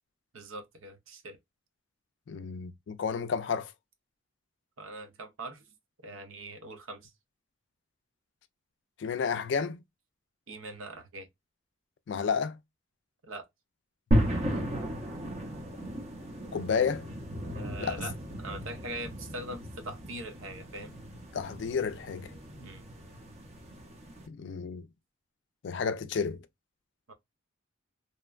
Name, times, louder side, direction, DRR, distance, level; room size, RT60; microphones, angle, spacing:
voice 1, 0.3-1.4 4.8-5.6 6.0-7.1 10.5-11.3 13.2-13.4 17.5-21.0 22.6-22.9 27.1-27.2, right 2 dB, 85° right, 0.7 m, -42 dB
voice 2, 2.3-3.7 9.0-9.8 12.1-12.6 14.4-14.7 16.5-17.1 17.8-18.0 21.3-22.3 24.3-24.9 25.6-26.5, left 6 dB, 60° left, 0.3 m, -31 dB
sound 1, 14.1-24.3, equal, 30° right, 0.6 m, -34 dB
2.9 x 2.1 x 2.3 m
head